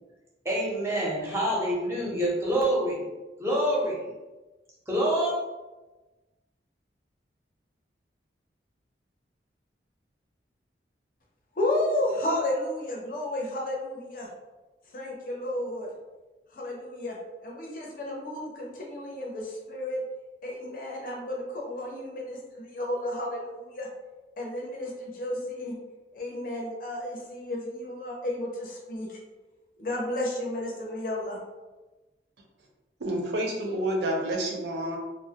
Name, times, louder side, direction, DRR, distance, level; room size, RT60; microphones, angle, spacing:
voice 1, 0.4-3.1 3.4-4.1 4.9-5.3, right 1 dB, 15° right, -4 dB, 0.5 m, -26 dB
voice 2, 11.6-14.3 14.9-15.9 16.5-20.0 20.4-23.9 24.4-25.8 26.1-29.2 29.8-31.4, left 1 dB, 50° left, -2 dB, 0.5 m, -32 dB
voice 3, 33.0-35.0, right 1 dB, 75° right, 1 dB, 0.5 m, -29 dB
2.3 x 2.0 x 2.8 m, 1.1 s
head